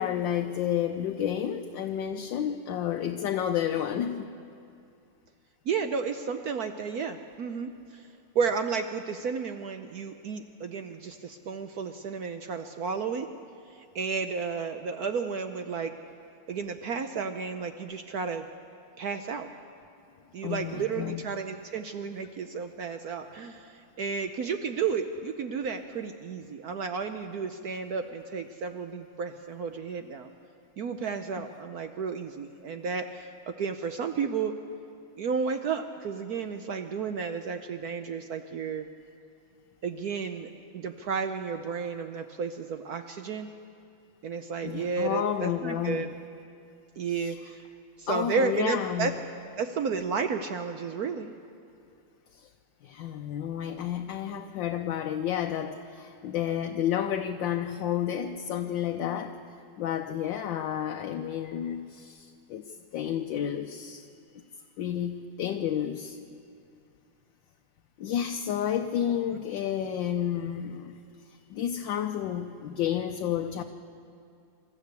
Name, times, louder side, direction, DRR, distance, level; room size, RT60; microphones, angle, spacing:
voice 1, 0.0-4.3 20.4-21.2 44.6-46.0 47.2-47.3 48.1-49.1 52.3-52.5 52.8-59.4 59.8-62.6 62.9-64.0 64.8-66.2 68.0-71.0 71.5-73.6, left 10 dB, 70° left, 5 dB, 1.3 m, -31 dB
voice 2, 5.6-13.3 13.7-15.9 16.5-18.5 19.0-19.5 20.3-30.3 30.8-34.5 35.2-38.9 39.8-40.5 40.7-43.5 44.2-46.1 47.0-47.7 48.0-49.1 49.6-51.3 69.3-69.4, right 5 dB, 65° right, 7 dB, 0.9 m, -32 dB
25.5 x 13.5 x 8.2 m, 2.5 s
omnidirectional pair, 2.4 m